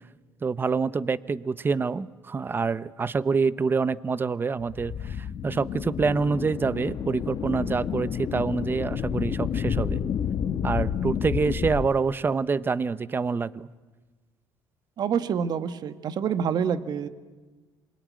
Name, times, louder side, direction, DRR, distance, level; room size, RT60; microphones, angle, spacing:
voice 1, 0.4-10.0 10.6-13.7, right 4 dB, 25° right, 18 dB, 0.8 m, -26 dB
sound 1, 4.6-11.9, left 8 dB, 50° left, 1.3 m, -30 dB
voice 2, 15.0-17.1, right 7 dB, 55° right, 12 dB, 1.4 m, -27 dB
26.5 x 22.0 x 9.5 m, 1.3 s
cardioid pair, 110°, 8 cm